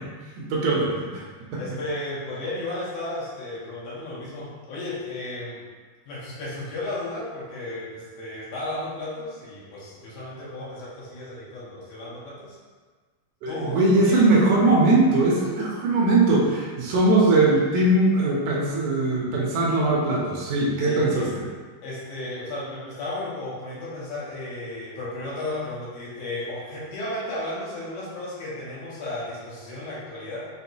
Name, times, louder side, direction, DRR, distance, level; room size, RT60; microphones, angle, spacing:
voice 1, 0.4-1.2 13.4-21.5, right 2 dB, 80° right, -4 dB, 1.8 m, -20 dB
voice 2, 1.6-5.6 6.1-12.6 13.5-14.3 20.8-21.3 21.8-30.5, left 2 dB, 80° left, -8 dB, 2.5 m, -34 dB
6.0 x 2.7 x 2.3 m, 1.5 s
omnidirectional pair, 4.3 m